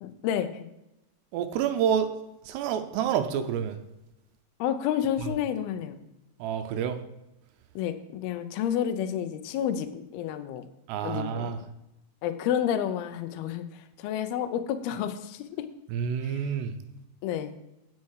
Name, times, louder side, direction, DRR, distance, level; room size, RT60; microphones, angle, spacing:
voice 1, 0.0-0.7 4.6-6.0 7.8-10.6 11.0-11.5 12.2-15.7 16.2-16.4 17.2-17.6, left 9 dB, 75° left, 9 dB, 2.4 m, -30 dB
voice 2, 1.3-2.1 2.5-3.8 6.4-7.0 10.9-11.6 15.9-16.7, right 8 dB, 80° right, 8 dB, 2.8 m, -28 dB
9.2 x 8.4 x 4.8 m, 0.91 s
omnidirectional pair, 5.0 m